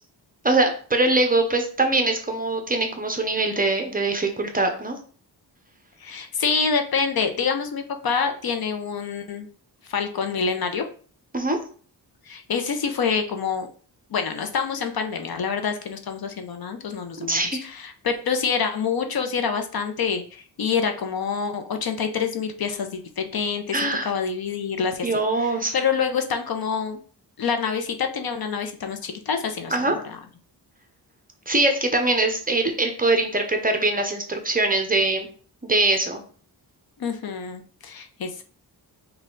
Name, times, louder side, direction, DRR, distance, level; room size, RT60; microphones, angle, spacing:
voice 1, 0.4-5.0 11.3-11.6 17.2-17.6 23.7-24.1 25.0-25.7 29.7-29.9 31.5-35.3 35.6-36.2, right 2 dB, 20° right, 5 dB, 0.6 m, -22 dB
voice 2, 6.0-9.5 9.8-10.8 12.3-13.7 14.1-25.1 25.4-27.0 27.4-30.2 37.0-38.4, left 6 dB, 60° left, 6 dB, 0.6 m, -27 dB
5.4 x 2.3 x 3.8 m, 0.43 s
wide cardioid pair, 155°, 41 cm